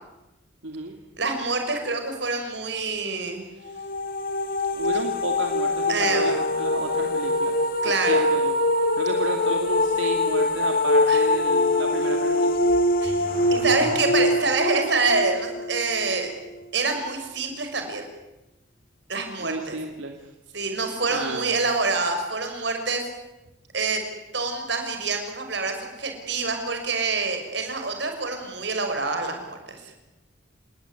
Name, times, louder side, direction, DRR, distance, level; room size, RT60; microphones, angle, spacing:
voice 1, 0.6-1.0 4.7-7.6 7.8-8.5 9.0-12.8 19.4-20.2 21.1-21.5, right 2 dB, 80° right, 3 dB, 2.7 m, -32 dB
voice 2, 1.2-3.4 5.9-6.3 7.8-8.2 11.1-11.2 13.0-13.2 13.5-16.3 16.7-18.0 19.1-19.8 20.5-23.0 23.7-24.0 24.3-29.6, right 3 dB, 60° right, 5 dB, 6.0 m, -26 dB
sound 1, 3.7-16.5, left 2 dB, 45° left, 1.8 m, -23 dB
Car / Accelerating revving vroom, 12.5-14.7, right 1 dB, 45° right, 5.7 m, -39 dB
30.0 x 19.5 x 9.8 m, 1.0 s
head